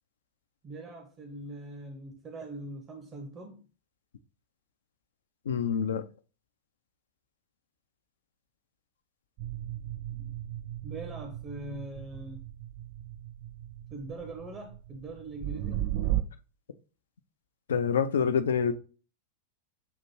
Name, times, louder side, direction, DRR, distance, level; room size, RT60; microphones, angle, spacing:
voice 1, 0.6-3.6 10.1-10.3 10.8-12.4 13.9-15.8, right 2 dB, 25° right, 0.8 m, -42 dB
voice 2, 5.5-6.0 17.7-18.7, left 7 dB, 65° left, 0.4 m, -26 dB
sound 1, 9.4-16.2, right 13 dB, 45° right, 0.4 m, -36 dB
7.1 x 2.5 x 3.0 m
figure-of-eight pair, 90°, 0 cm